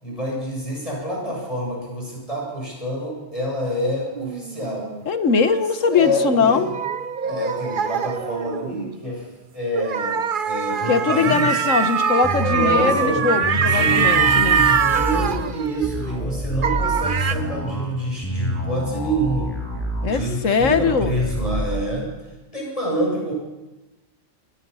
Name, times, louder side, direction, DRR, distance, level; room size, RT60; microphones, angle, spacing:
voice 1, 0.0-4.9 5.9-6.7 7.2-9.2 9.5-11.6 12.4-13.3 13.5-19.5 20.0-22.1 22.5-23.3, right 1 dB, 25° left, -2 dB, 7.7 m, -27 dB
sound 1, 4.2-8.9 9.7-16.3 16.6-17.3, right 6 dB, 45° right, 0.9 m, -23 dB
voice 2, 5.1-6.7 10.9-14.6 20.0-21.1, left 5 dB, 75° left, 10 dB, 1.6 m, -21 dB
sound 2, 12.2-21.8, equal, 10° left, 7.1 m, -28 dB
25.5 x 22.5 x 5.7 m, 1.1 s
omnidirectional pair, 1.3 m